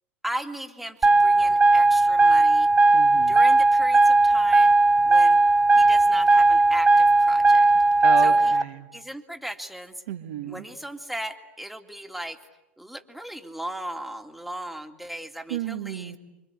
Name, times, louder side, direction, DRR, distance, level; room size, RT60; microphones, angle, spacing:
voice 1, 0.2-2.7 3.3-4.7 5.1-5.4 5.7-7.7 8.2-8.5 8.9-10.0 10.4-12.4 12.8-16.2, right 1 dB, ahead, 4 dB, 2.4 m, -37 dB
sound 1, 1.0-8.6, right 2 dB, 15° right, 1.0 m, -17 dB
voice 2, 2.9-3.4 8.0-8.9 10.1-10.6 15.5-16.2, right 11 dB, 65° right, 5 dB, 1.7 m, -32 dB
28.5 x 25.0 x 8.3 m, 0.99 s
figure-of-eight pair, 80°, 7 cm